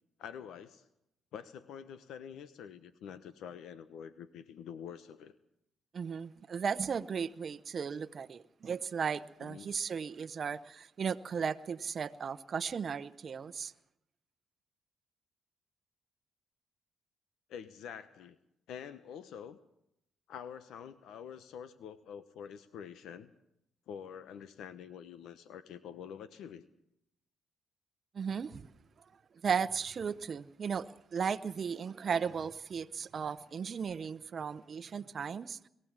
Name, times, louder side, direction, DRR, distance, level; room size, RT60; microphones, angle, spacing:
voice 1, 0.2-0.9 1.3-5.3 9.4-9.7 17.5-18.4 18.7-19.6 20.3-23.3 23.9-26.7, left 8 dB, 80° left, 11 dB, 1.0 m, -46 dB
voice 2, 5.9-13.7 28.1-28.7 29.4-35.7, right 6 dB, 45° right, 10 dB, 0.8 m, -36 dB
22.0 x 16.0 x 7.4 m, 0.80 s
cardioid pair, 90°, 0 cm